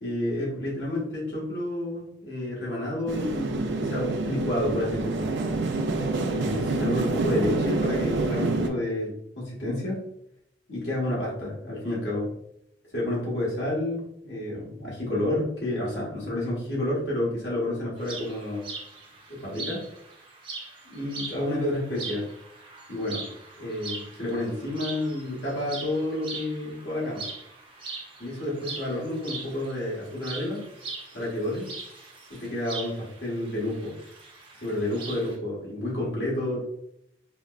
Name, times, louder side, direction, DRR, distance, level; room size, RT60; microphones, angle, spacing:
voice 1, 0.0-5.3 6.3-10.0 10.7-12.3 12.9-18.7 19.3-19.8 20.9-22.3 22.9-23.2 23.6-27.3 28.2-30.7 31.1-31.7 32.3-33.9 34.6-36.6, left 1 dB, 80° left, -6 dB, 1.4 m, -30 dB
sound 1, 3.1-8.7, right 3 dB, 75° right, 0.4 m, -27 dB
sound 2, 18.0-35.4, right 3 dB, 30° right, 0.7 m, -41 dB
4.6 x 2.0 x 2.4 m, 0.75 s
head